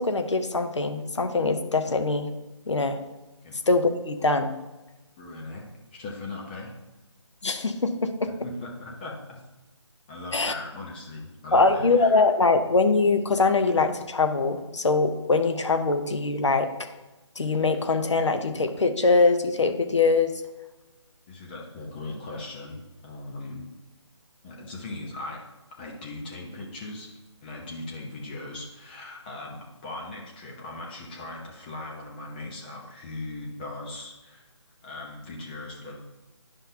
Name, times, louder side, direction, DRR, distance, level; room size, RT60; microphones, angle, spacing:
voice 1, 0.0-2.3 2.7-3.0 3.7-4.5 7.4-8.3 10.3-10.5 11.5-16.7 17.4-20.3, left 3 dB, 70° left, 7 dB, 0.8 m, -23 dB
voice 2, 5.2-6.7 8.4-9.4 10.1-12.2 21.3-23.7 24.4-25.4 25.7-27.1 27.4-34.5 34.8-36.0, left 2 dB, 20° left, -2 dB, 0.9 m, -39 dB
10.5 x 5.3 x 2.8 m, 1.1 s
figure-of-eight pair, 155°, 16 cm